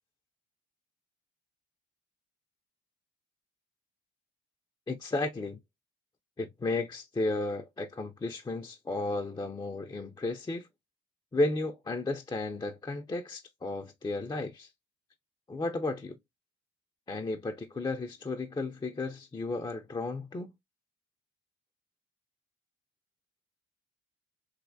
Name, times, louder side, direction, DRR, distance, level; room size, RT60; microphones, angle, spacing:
voice 1, 4.9-5.6 6.4-10.7 11.3-14.7 15.5-16.2 17.1-20.5, left 2 dB, 15° left, 0.4 m, -33 dB
3.2 x 2.8 x 2.5 m
cardioid pair, 90°, 30 cm